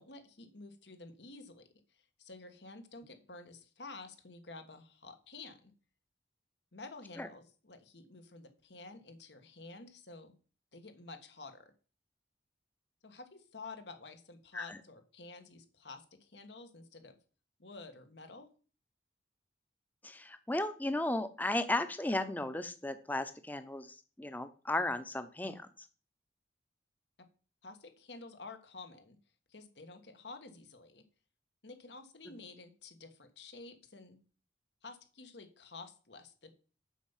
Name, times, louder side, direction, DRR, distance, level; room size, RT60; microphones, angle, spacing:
voice 1, 0.0-1.7 2.2-5.7 6.7-10.4 10.7-11.7 13.0-17.2 17.6-18.5 27.6-29.2 29.5-31.0 31.6-34.2 34.8-36.5, left 3 dB, 80° left, 8 dB, 1.5 m, -50 dB
voice 2, 20.0-25.9, left 1 dB, 10° left, 11 dB, 0.7 m, -35 dB
7.3 x 5.6 x 7.2 m, 0.38 s
head